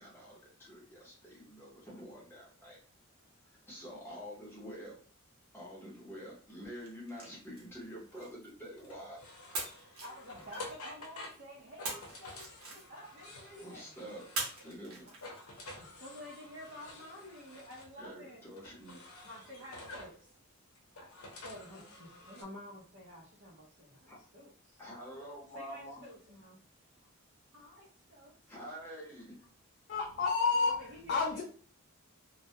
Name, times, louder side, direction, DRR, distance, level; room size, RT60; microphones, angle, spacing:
voice 1, 0.0-2.8 3.5-5.0 5.5-9.2 13.6-14.2 14.6-15.0 18.0-19.0 24.1-24.2 24.8-26.0 28.5-29.4, equal, 10° left, -4 dB, 0.7 m, -47 dB
sound 1, 6.8-9.0 9.5-11.1 11.8-13.3 14.3-15.7, right 3 dB, 80° right, 0.8 m, -43 dB
sound 2, 8.8-14.8 15.1-17.9 18.6-20.2 20.8-22.4, left 2 dB, 85° left, 0.6 m, -50 dB
voice 2, 9.7-13.9 15.8-18.4 19.2-20.3 21.4-24.8 25.5-26.6 27.0-27.1 27.5-28.5 30.5-31.4, left 1 dB, 55° right, -5 dB, 0.6 m, -51 dB
voice 3, 29.9-30.7 31.1-31.4, left 4 dB, 50° left, -1 dB, 0.3 m, -29 dB
2.1 x 2.1 x 2.7 m, 0.43 s
head